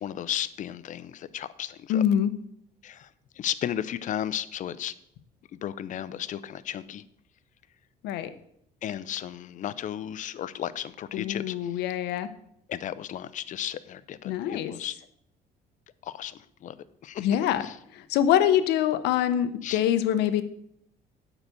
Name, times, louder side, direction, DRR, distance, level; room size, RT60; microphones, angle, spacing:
voice 1, 0.0-2.0 2.8-3.1 3.4-4.9 5.6-7.0 8.8-11.8 12.7-15.0 16.0-16.8 17.0-17.3 17.6-17.7 19.6-19.8, left 10 dB, 50° left, 16 dB, 0.5 m, -34 dB
voice 2, 1.9-2.3 8.0-8.3 11.1-12.3 14.2-14.7 17.2-17.6 17.9-20.4, left 10 dB, 85° left, 11 dB, 0.7 m, -24 dB
9.1 x 4.0 x 6.9 m, 0.72 s
cardioid pair, 110°, 17 cm